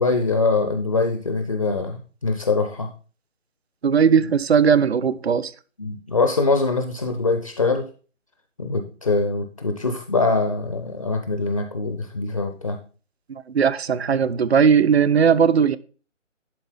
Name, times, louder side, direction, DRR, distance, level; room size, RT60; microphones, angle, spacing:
voice 1, 0.0-2.9 4.2-4.3 5.8-7.8 8.6-12.8, left 3 dB, 25° left, 0.6 m, -23 dB
voice 2, 3.8-5.5 13.5-15.8, right 7 dB, 55° right, 0.6 m, -18 dB
11.0 x 3.9 x 5.5 m
figure-of-eight pair, 150°, 38 cm